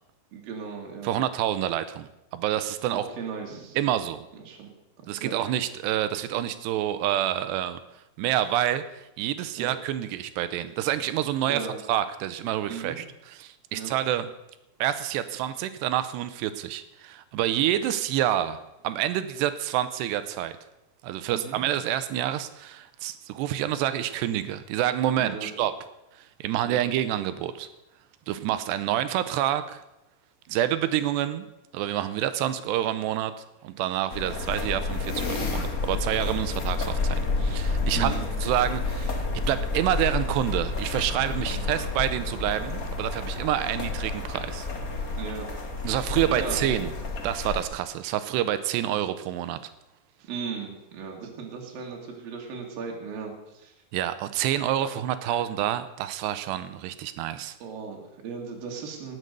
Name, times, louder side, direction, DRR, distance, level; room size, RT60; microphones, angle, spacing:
voice 1, 0.3-1.1 2.9-3.8 4.5-4.7 5.0-5.3 9.6-9.7 11.5-11.8 12.7-13.0 13.7-13.9 21.3-21.6 25.2-25.5 26.7-26.8 37.9-38.3 41.4-41.7 45.2-45.5 46.3-46.7 50.3-53.7 55.2-55.4 57.6-59.2, right 5 dB, 60° right, 0 dB, 3.6 m, -36 dB
voice 2, 1.0-3.1 3.8-4.3 5.1-7.8 8.2-14.3 14.8-20.6 21.0-25.7 26.4-27.7 28.3-29.8 30.5-31.5 31.7-33.3 33.6-44.7 45.8-46.9 47.2-49.6 53.9-57.6, right 12 dB, 80° right, 12 dB, 2.8 m, -28 dB
sound 1, 34.1-47.6, left 3 dB, 75° left, 0.8 m, -30 dB
18.5 x 8.0 x 6.7 m, 0.92 s
omnidirectional pair, 4.9 m